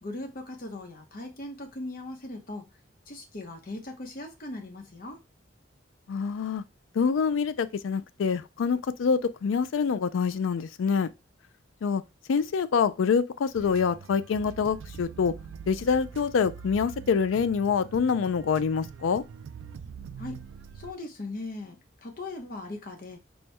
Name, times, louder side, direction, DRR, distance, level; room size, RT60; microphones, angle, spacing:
voice 1, 0.0-2.7 3.1-5.2 20.2-20.4 20.7-23.2, left 2 dB, 45° left, 0.8 m, -39 dB
voice 2, 6.1-6.6 7.0-11.1 11.8-12.0 12.3-15.3 15.7-19.2, left 6 dB, 85° left, 0.4 m, -26 dB
sound 1, 13.5-20.9, right 6 dB, 75° right, 0.3 m, -44 dB
4.4 x 2.2 x 3.2 m
head